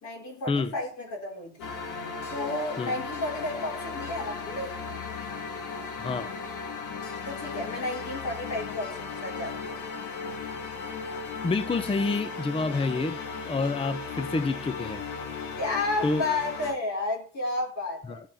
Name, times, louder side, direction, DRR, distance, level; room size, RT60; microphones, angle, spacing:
voice 1, 0.0-1.7 2.3-4.7 7.2-9.8 15.6-18.2, left 2 dB, 70° left, 4.7 m, -32 dB
sound 1, 1.6-16.7, left 5 dB, 90° left, 1.7 m, -36 dB
voice 2, 6.0-6.3 11.4-15.0 16.0-16.2 18.1-18.2, left 3 dB, 20° left, 0.6 m, -28 dB
15.0 x 7.2 x 3.5 m
cardioid pair, 90°, 30 cm